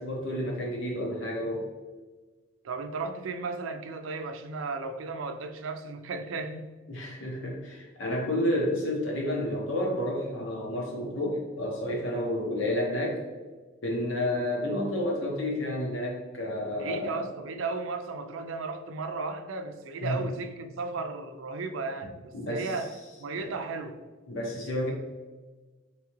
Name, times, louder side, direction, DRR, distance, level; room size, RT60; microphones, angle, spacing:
voice 1, 0.0-1.7 6.9-13.2 13.8-17.3 20.0-20.2 22.3-22.7 24.3-24.9, left 1 dB, 75° left, -2 dB, 1.0 m, -30 dB
voice 2, 2.6-6.7 16.8-24.0, right 3 dB, 85° right, 7 dB, 0.4 m, -35 dB
3.6 x 3.0 x 3.0 m, 1.3 s
head